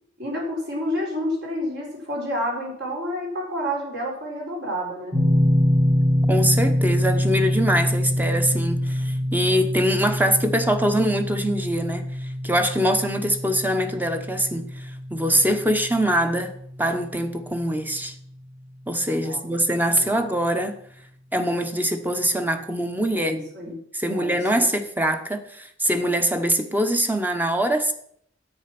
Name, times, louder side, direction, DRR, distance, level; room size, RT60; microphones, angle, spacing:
voice 1, 0.2-5.2 19.2-19.4 19.9-20.2 23.1-23.7 24.1-24.7, equal, 60° right, -2 dB, 4.8 m, -29 dB
sound 1, 5.1-18.0, equal, 30° right, 3.6 m, -25 dB
voice 2, 6.3-18.1 18.9-20.8 21.3-23.4 23.7-27.9, right 1 dB, 10° right, 7 dB, 1.0 m, -23 dB
10.0 x 8.7 x 6.0 m, 0.67 s
head